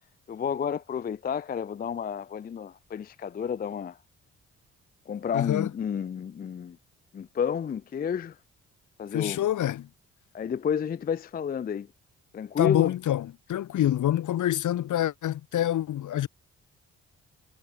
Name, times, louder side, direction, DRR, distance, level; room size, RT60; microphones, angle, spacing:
voice 1, 0.3-4.0 5.1-6.8 7.1-8.3 9.0-9.4 10.3-11.9 12.3-12.9, left 7 dB, 30° left, 0.4 m, -31 dB
voice 2, 5.3-5.7 9.1-9.9 12.6-16.3, left 12 dB, 70° left, 1.8 m, -26 dB
supercardioid pair, 50°, 32 cm